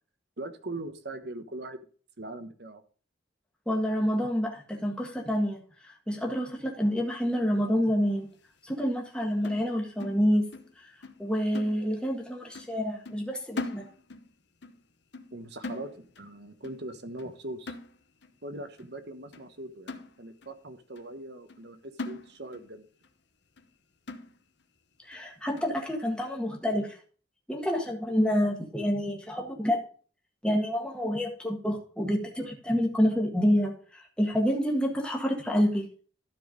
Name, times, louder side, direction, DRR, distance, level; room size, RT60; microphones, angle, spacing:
voice 1, 0.4-1.8 2.2-2.8 15.3-17.7 18.4-22.9, right 1 dB, 60° right, 9 dB, 1.2 m, -41 dB
voice 2, 3.7-8.3 8.6-10.5 10.8-10.9 11.2-13.8 25.0-27.0 27.5-29.9 30.4-35.8, equal, 5° left, 0 dB, 1.6 m, -28 dB
sound 1, 9.4-10.8 11.0-11.3 11.5-12.2 12.5-12.8 13.1-14.3 14.6-14.8 15.1-16.3 16.6-16.9 17.2-17.4 17.7-18.3 18.8-18.9 19.3-19.5 19.9-20.6 21.0-21.1 21.5-21.7 22.0-22.7 23.0-23.1 23.6-23.7 24.1-24.6 25.1-25.2 25.6-25.8, left 3 dB, 65° left, 0.9 m, -41 dB
13.0 x 4.7 x 5.1 m, 0.41 s
head